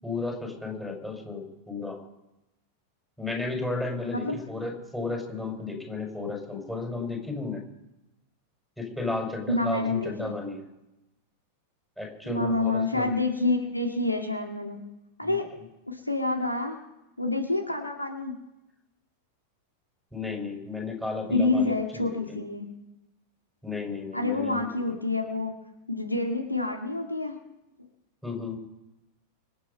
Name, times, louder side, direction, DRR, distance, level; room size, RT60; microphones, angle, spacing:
voice 1, 0.0-2.0 3.2-7.6 8.8-10.6 12.0-13.1 15.2-15.4 20.1-22.4 23.6-24.7 28.2-28.6, left 3 dB, 5° left, 0 dB, 5.7 m, -33 dB
voice 2, 9.5-10.3 12.2-14.8 15.2-15.5 15.9-16.8 17.2-18.4 21.3-22.6 24.1-25.5 25.9-27.4, left 2 dB, 85° left, 4 dB, 2.0 m, -27 dB
25.5 x 8.9 x 5.5 m, 0.96 s
figure-of-eight pair, 90°, 0 cm